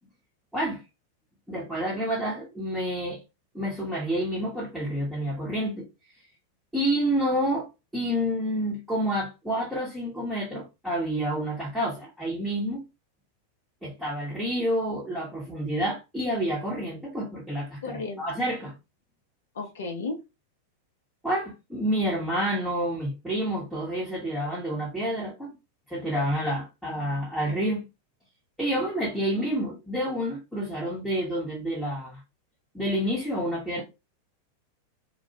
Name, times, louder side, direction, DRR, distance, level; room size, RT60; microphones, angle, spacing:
voice 1, 1.5-3.2 3.5-5.9 6.7-12.8 13.8-18.7 21.2-25.5 25.9-27.8 28.6-32.2 32.7-33.8, equal, ahead, 0.9 m, -29 dB
voice 2, 17.8-18.2 19.6-20.2, left 3 dB, 65° left, 0.6 m, -33 dB
2.3 x 2.1 x 2.7 m
figure-of-eight pair, 90°, 0 cm